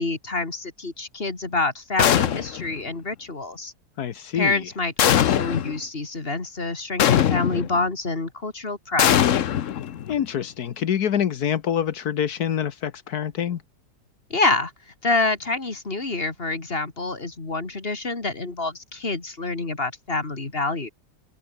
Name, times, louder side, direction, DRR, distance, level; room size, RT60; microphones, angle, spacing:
voice 1, 0.0-3.7 4.3-9.2 14.3-14.7 15.0-20.9, left 3 dB, 35° left, 2.7 m, -27 dB
sound 1, 2.0-2.7 5.0-5.8 7.0-7.8 9.0-10.2, left 10 dB, 55° left, 1.1 m, -21 dB
voice 2, 4.0-4.7 10.1-13.6, left 9 dB, 75° left, 1.6 m, -26 dB
omnidirectional pair, 1.7 m